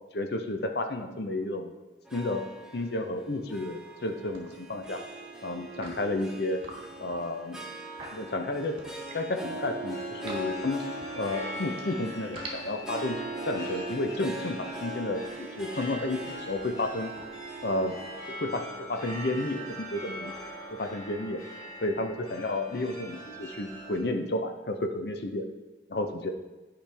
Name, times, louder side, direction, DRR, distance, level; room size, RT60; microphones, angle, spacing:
voice 1, 0.1-1.7 2.1-2.4 2.7-5.0 5.4-6.6 7.0-7.6 8.1-8.8 9.1-10.8 11.2-17.1 17.6-18.0 18.4-20.3 20.7-21.4 21.8-25.5 25.9-26.3, left 2 dB, 60° left, 6 dB, 0.7 m, -31 dB
Harp, 2.1-20.5, right 1 dB, 5° right, 0.7 m, -41 dB
sound 1, 3.9-4.1 4.3-5.0 5.6-9.3 9.7-11.8 12.2-18.2, right 2 dB, 30° right, 1.4 m, -48 dB
sound 2, 9.9-24.0, equal, 20° left, 1.6 m, -43 dB
10.0 x 5.1 x 3.4 m, 1.2 s
head